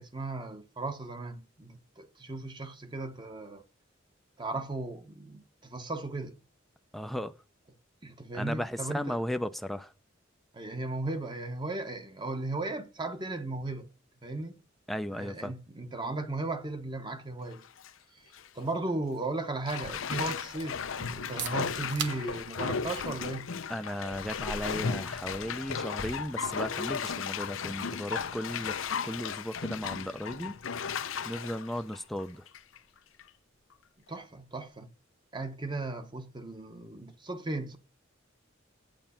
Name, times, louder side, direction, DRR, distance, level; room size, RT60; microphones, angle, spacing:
voice 1, 0.0-3.6 4.4-6.4 8.0-9.2 10.5-13.9 14.2-14.6 15.1-17.6 18.1-18.2 18.5-23.5 34.1-34.9 35.3-37.8, right 2 dB, 25° right, 1.1 m, -36 dB
voice 2, 6.9-7.3 8.3-9.9 14.9-15.5 23.7-30.5 31.2-32.4, equal, ahead, 0.5 m, -35 dB
Bathtub (filling or washing), 17.5-17.9 18.3-18.5 19.7-32.8 33.2-33.3, left 6 dB, 85° left, 0.7 m, -35 dB
sound 1, 21.1-36.7, right 8 dB, 60° right, 1.1 m, -49 dB
9.0 x 9.0 x 5.7 m
head